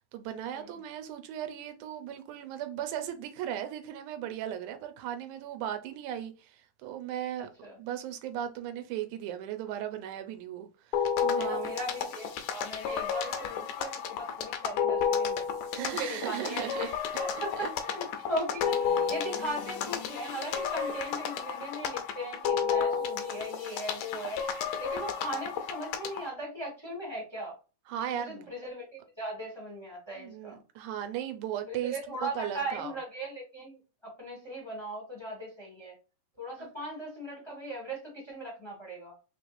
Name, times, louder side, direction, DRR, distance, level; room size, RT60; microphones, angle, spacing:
voice 1, 0.1-7.5 7.8-11.7 15.7-16.9 17.6-17.7 19.3-19.4 27.9-28.5 30.2-32.9 36.6-36.7, right 10 dB, 75° right, 2.0 m, -37 dB
sound 1, 10.9-26.3, left 7 dB, 75° left, 1.6 m, -32 dB
voice 2, 11.3-15.4 15.7-16.9 17.1-24.4 24.8-27.6 28.1-28.9 29.2-30.6 31.7-36.0 36.4-39.1, equal, 20° left, 0.8 m, -38 dB
5.0 x 3.2 x 2.6 m
omnidirectional pair, 3.8 m